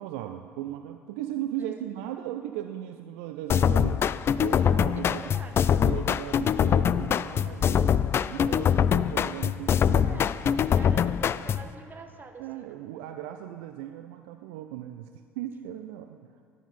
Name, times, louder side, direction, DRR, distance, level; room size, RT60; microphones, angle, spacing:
voice 1, 0.0-4.1 4.4-5.3 5.8-10.9 12.4-16.3, right 12 dB, 65° right, 8 dB, 0.5 m, -37 dB
sound 1, 3.5-11.7, left 8 dB, 35° left, 0.4 m, -24 dB
voice 2, 5.1-5.6 10.0-10.4 10.7-12.7, right 4 dB, 30° right, 4 dB, 1.6 m, -46 dB
19.0 x 11.5 x 4.3 m, 2.3 s
figure-of-eight pair, 60°, 7 cm